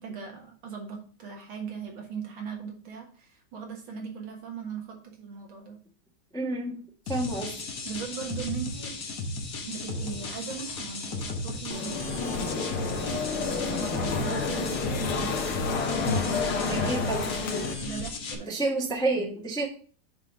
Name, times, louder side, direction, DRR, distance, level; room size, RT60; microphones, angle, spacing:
voice 1, 0.0-5.8 7.8-8.9 9.7-12.4 12.9-15.7 16.0-17.2 17.8-18.5, right 6 dB, 70° right, 1 dB, 2.3 m, -39 dB
voice 2, 6.3-6.8 7.1-7.5 16.7-17.3 18.5-19.7, right 2 dB, 5° left, 0 dB, 1.0 m, -29 dB
sound 1, 7.1-18.3, left 2 dB, 50° left, 1.4 m, -35 dB
sound 2, 11.7-17.7, left 4 dB, 80° left, 2.0 m, -29 dB
6.8 x 3.8 x 6.0 m, 0.43 s
omnidirectional pair, 2.3 m